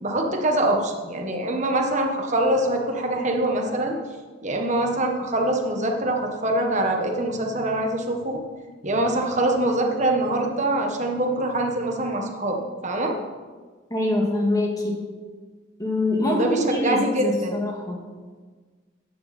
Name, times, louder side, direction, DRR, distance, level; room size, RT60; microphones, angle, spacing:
voice 1, 0.0-4.0 4.4-8.4 8.8-13.1 16.2-17.6, right 1 dB, 40° right, 2 dB, 1.5 m, -24 dB
voice 2, 13.9-14.9 15.8-18.0, left 1 dB, 20° left, -1 dB, 2.1 m, -24 dB
15.0 x 9.9 x 4.3 m, 1.4 s
head